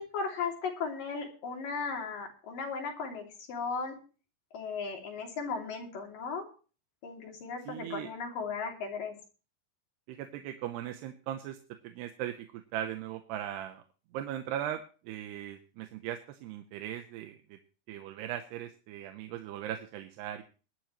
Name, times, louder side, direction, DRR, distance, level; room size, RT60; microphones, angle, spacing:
voice 1, 0.0-4.0 4.5-6.4 7.0-9.1, left 5 dB, 55° left, 1 dB, 4.4 m, -36 dB
voice 2, 7.7-8.1 10.1-11.6 11.8-13.8 14.1-17.6 17.9-20.4, right 11 dB, 85° right, 6 dB, 3.0 m, -39 dB
20.5 x 12.0 x 3.1 m, 0.37 s
omnidirectional pair, 4.7 m